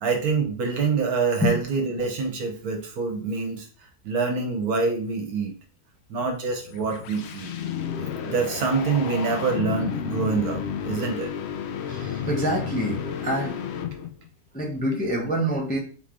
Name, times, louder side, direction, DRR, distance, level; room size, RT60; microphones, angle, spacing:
voice 1, 0.0-3.7 4.0-5.5 6.1-7.5 8.3-11.3, right 4 dB, 70° right, 3 dB, 1.4 m, -26 dB
sound 1, 6.5-14.3, left 8 dB, 80° left, 0.6 m, -32 dB
voice 2, 11.9-13.6 14.5-15.8, right 1 dB, 10° left, -1 dB, 0.6 m, -26 dB
3.8 x 3.2 x 3.6 m, 0.39 s
omnidirectional pair, 1.7 m